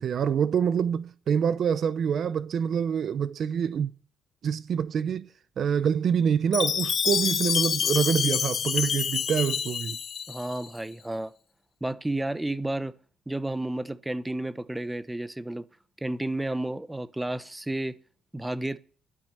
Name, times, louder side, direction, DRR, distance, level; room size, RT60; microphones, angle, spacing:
voice 1, 0.0-3.9 4.4-5.3 5.6-10.0, right 7 dB, 60° right, 0.6 m, -26 dB
Chime, 6.5-10.7, left 7 dB, 55° left, 0.8 m, -27 dB
voice 2, 10.3-11.3 11.8-12.9 13.3-15.6 16.0-18.0 18.3-18.8, right 1 dB, 10° right, 0.9 m, -31 dB
12.5 x 8.2 x 6.7 m
cardioid pair, 90°, 0 cm